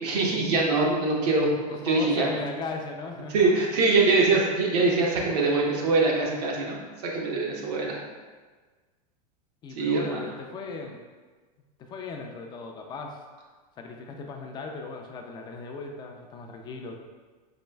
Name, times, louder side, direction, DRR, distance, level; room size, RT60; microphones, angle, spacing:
voice 1, 0.0-2.3 3.3-8.0 9.8-10.3, right 3 dB, 70° right, -2 dB, 0.9 m, -24 dB
voice 2, 1.7-3.7 9.6-11.0 11.8-13.2 13.8-17.0, left 4 dB, 20° left, 2 dB, 0.3 m, -37 dB
4.2 x 3.0 x 2.2 m, 1.4 s
supercardioid pair, 130°, 21 cm